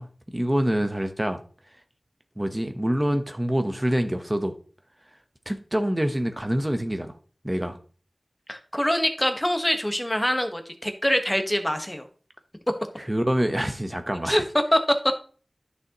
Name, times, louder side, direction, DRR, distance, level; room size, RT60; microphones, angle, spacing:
voice 1, 0.0-1.4 2.4-4.5 5.5-7.1 7.4-7.8 13.1-14.4, equal, 20° right, 1.0 m, -26 dB
voice 2, 8.5-12.0 14.2-14.4 14.7-14.8, equal, 15° left, 1.3 m, -24 dB
10.5 x 6.4 x 3.0 m
wide cardioid pair, 40°, 0 cm